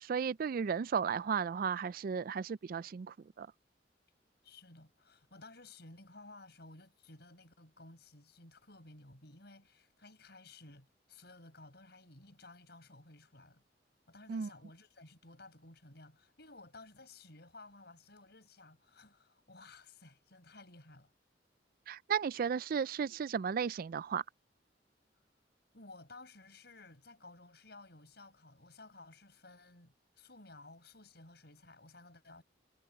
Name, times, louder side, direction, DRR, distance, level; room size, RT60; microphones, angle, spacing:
voice 1, 0.0-3.5 14.3-14.5 21.9-24.2, right 6 dB, 55° right, 0.4 m, -34 dB
voice 2, 4.4-13.6 14.1-21.1 25.7-32.4, left 2 dB, 65° left, 6.8 m, -56 dB
head